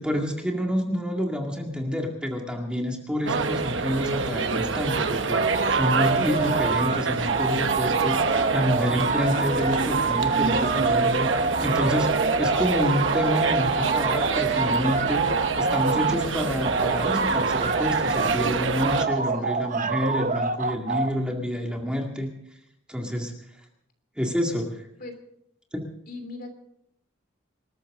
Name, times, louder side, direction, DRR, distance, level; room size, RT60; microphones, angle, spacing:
voice 1, 0.0-22.3 22.9-23.3 24.2-24.9 25.7-25.9, equal, 5° right, 1 dB, 2.1 m, -28 dB
sound 1, 3.3-19.1, right 4 dB, 70° right, 1.1 m, -27 dB
sound 2, 5.3-7.0 7.3-16.2 16.6-18.4 18.8-21.1, right 4 dB, 40° right, 0.9 m, -26 dB
sound 3, 5.5-18.4, left 2 dB, 85° left, 1.3 m, -44 dB
voice 2, 9.2-9.5 19.1-19.5 25.0-25.1 26.1-26.5, left 2 dB, 50° left, 6 dB, 3.1 m, -40 dB
26.5 x 13.0 x 3.7 m, 0.74 s
head